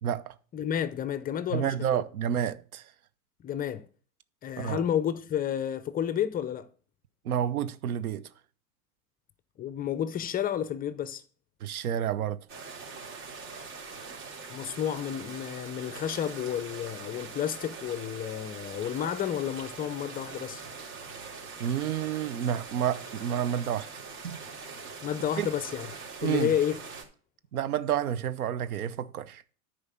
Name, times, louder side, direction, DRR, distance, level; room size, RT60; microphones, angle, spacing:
voice 1, 0.0-0.3 1.5-2.8 4.6-4.8 7.2-8.3 11.6-12.4 21.6-23.9 24.2-24.4 25.4-25.5 26.2-26.5 27.5-29.4, right 10 dB, 75° right, 0.9 m, -29 dB
voice 2, 0.5-2.0 3.4-3.9 4.4-6.7 9.6-11.2 14.5-20.6 25.0-25.9 26.2-26.8, left 10 dB, 20° left, 0.5 m, -31 dB
sound 1, 12.5-27.0, right 4 dB, 45° right, 3.8 m, -43 dB
9.6 x 5.0 x 7.2 m
hypercardioid pair, 95°, 44 cm